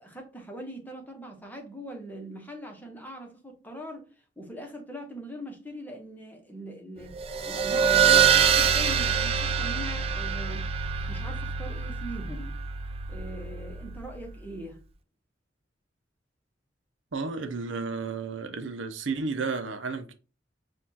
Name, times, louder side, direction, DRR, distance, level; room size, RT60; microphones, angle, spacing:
voice 1, 0.0-4.1 4.4-7.2 7.4-10.7 11.1-12.6 13.1-14.8, equal, 10° left, 0.9 m, -41 dB
sound 1, 7.1-14.2, right 7 dB, 30° right, 0.4 m, -25 dB
voice 2, 17.1-20.1, right 4 dB, 80° right, 0.6 m, -32 dB
6.4 x 2.4 x 2.8 m
head